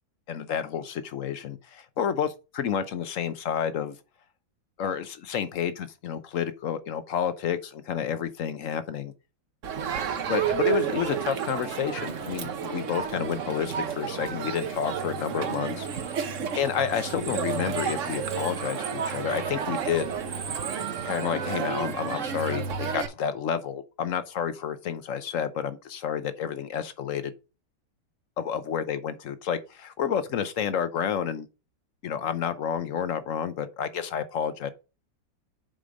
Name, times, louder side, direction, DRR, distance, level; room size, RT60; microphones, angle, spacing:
voice 1, 0.3-4.0 4.8-9.1 10.3-15.9 16.5-20.1 21.0-27.3 28.4-31.5 32.0-34.7, left 8 dB, 60° left, 0.9 m, -30 dB
Crowd, 9.6-23.1, right 7 dB, 50° right, 1.0 m, -31 dB
7.8 x 4.9 x 5.1 m
omnidirectional pair, 2.1 m